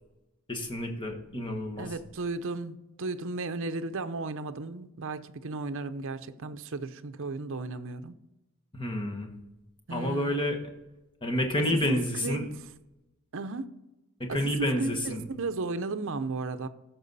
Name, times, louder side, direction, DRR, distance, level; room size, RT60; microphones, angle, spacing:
voice 1, 0.5-1.9 8.7-9.3 9.9-10.6 11.2-12.4 14.2-15.2, left 1 dB, 20° left, 1.4 m, -29 dB
voice 2, 1.8-8.1 9.9-10.5 11.7-12.5 13.3-13.7 14.3-16.7, right 3 dB, 60° right, 0.7 m, -35 dB
14.5 x 6.2 x 4.1 m
head